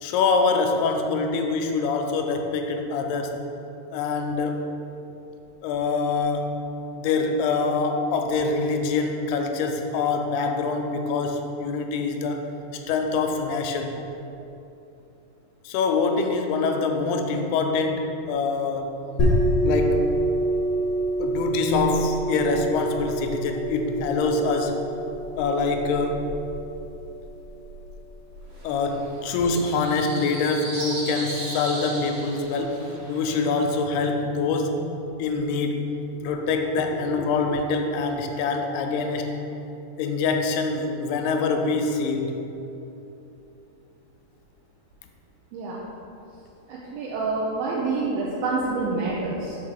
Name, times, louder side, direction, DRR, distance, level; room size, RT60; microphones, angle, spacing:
voice 1, 0.0-3.4 3.9-4.7 5.6-6.6 7.0-12.5 12.9-14.0 15.6-19.0 19.6-20.1 21.2-24.9 25.4-26.3 28.6-34.8 35.2-35.9 36.2-39.4 40.0-42.4, left 4 dB, 85° left, 4 dB, 2.5 m, -25 dB
sound 1, 19.2-28.5, right 1 dB, 60° left, 1.1 m, -27 dB
sound 2, 28.5-33.7, right 1 dB, 45° right, 1.4 m, -37 dB
voice 2, 46.7-49.6, right 3 dB, 80° right, -5 dB, 2.5 m, -27 dB
5.9 x 4.9 x 6.3 m, 2.9 s
omnidirectional pair, 4.6 m